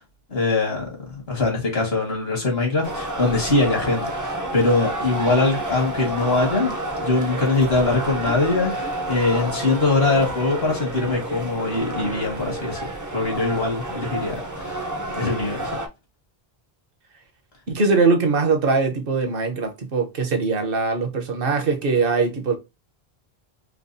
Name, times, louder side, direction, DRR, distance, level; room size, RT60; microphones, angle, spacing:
voice 1, 0.3-6.7 7.0-12.8 13.1-14.8 15.1-15.7, left 3 dB, 75° left, 1.9 m, -22 dB
sound 1, 2.8-15.9, right 1 dB, 25° right, 0.5 m, -30 dB
voice 2, 17.7-22.6, right 4 dB, 65° right, 1.1 m, -21 dB
4.6 x 2.3 x 2.6 m
omnidirectional pair, 1.0 m